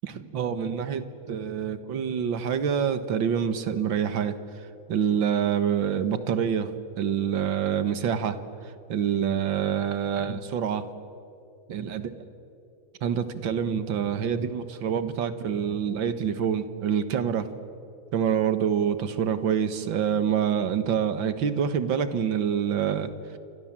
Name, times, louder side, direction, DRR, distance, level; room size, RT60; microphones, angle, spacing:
voice 1, 0.0-4.4 4.9-8.4 8.6-10.9 11.7-12.1 13.0-17.5 18.1-23.1, right 8 dB, 70° right, 11 dB, 2.1 m, -26 dB
29.0 x 25.0 x 7.5 m, 2.6 s
omnidirectional pair, 2.2 m